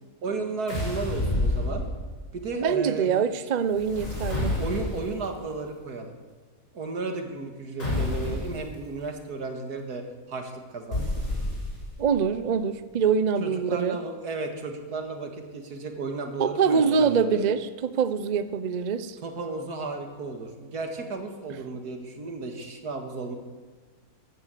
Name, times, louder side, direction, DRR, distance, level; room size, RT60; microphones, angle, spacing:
voice 1, 0.2-1.8 2.3-3.1 4.6-6.2 6.7-11.2 13.4-17.5 19.2-23.4, right 3 dB, 85° right, 5 dB, 2.3 m, -34 dB
sound 1, 0.7-2.3 3.7-5.3 7.8-8.6 10.9-12.0, left 2 dB, 55° left, 6.4 m, -29 dB
voice 2, 2.6-4.5 12.0-14.0 16.4-19.2, right 6 dB, 45° right, 12 dB, 0.6 m, -24 dB
14.5 x 11.0 x 7.6 m, 1.4 s
omnidirectional pair, 1.6 m